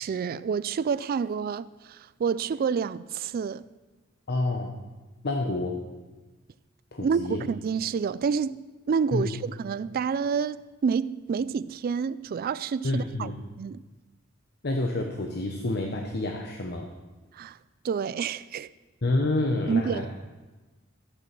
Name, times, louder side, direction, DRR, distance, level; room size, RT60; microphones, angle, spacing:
voice 1, 0.0-3.7 7.0-13.3 13.6-13.8 17.3-17.6 17.8-18.7 19.7-20.1, right 6 dB, 45° right, 0.3 m, -28 dB
voice 2, 4.3-4.8 5.2-5.8 6.9-7.5 9.1-9.4 12.8-13.3 14.6-16.9 19.0-20.1, left 2 dB, 55° left, 1.0 m, -28 dB
14.5 x 8.4 x 6.1 m
head